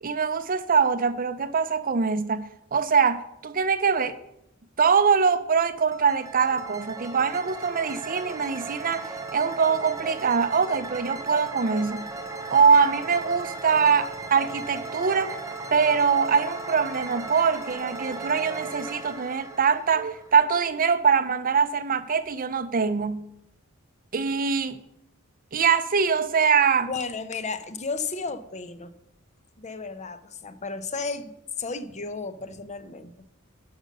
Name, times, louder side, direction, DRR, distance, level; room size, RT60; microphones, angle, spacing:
voice 1, 0.0-4.2 4.8-12.1 12.5-15.4 15.7-23.3 24.1-24.8 25.5-26.9, right 6 dB, 40° right, 0.6 m, -23 dB
sound 1, 5.9-20.7, right 3 dB, 15° right, 0.9 m, -37 dB
voice 2, 26.9-28.9 29.6-33.1, left 4 dB, 35° left, 0.7 m, -33 dB
11.5 x 5.3 x 6.6 m
head